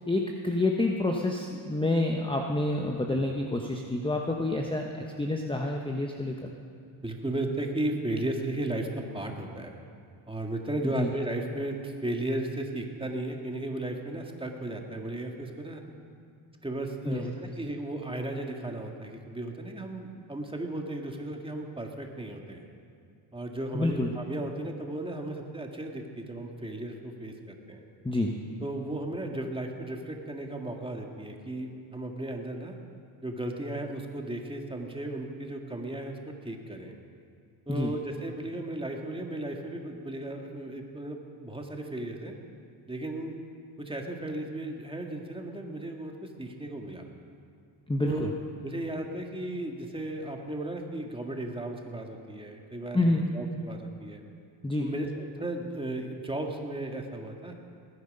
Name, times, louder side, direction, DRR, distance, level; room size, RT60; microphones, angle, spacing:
voice 1, 0.1-6.5 10.8-11.1 17.1-17.2 23.7-24.1 28.0-28.3 37.7-37.9 47.9-48.3 52.9-53.3 54.6-54.9, left 2 dB, 10° left, 1 dB, 1.0 m, -28 dB
voice 2, 7.0-9.7 10.3-15.8 16.6-22.6 23.3-27.8 28.6-32.8 33.2-36.9 37.7-42.4 42.9-43.4 43.8-47.0 48.0-48.3 48.6-54.2 54.8-57.5, right 1 dB, 10° right, 2 dB, 1.9 m, -35 dB
19.5 x 9.8 x 5.4 m, 2.3 s
cardioid pair, 80°, 48 cm